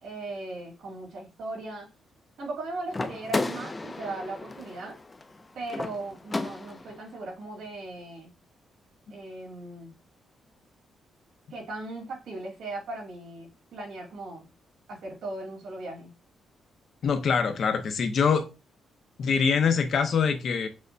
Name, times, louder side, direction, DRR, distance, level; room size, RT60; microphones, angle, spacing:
voice 1, 0.0-1.9 2.4-5.0 5.5-8.3 9.1-9.9 11.5-14.4 14.9-16.1, right 2 dB, 85° right, 2.0 m, -38 dB
sound 1, 2.9-7.0, left 2 dB, 20° left, 0.4 m, -34 dB
voice 2, 17.0-18.5 19.2-20.7, left 6 dB, 55° left, 0.6 m, -24 dB
6.2 x 2.1 x 2.6 m
cardioid pair, 140°, 0 cm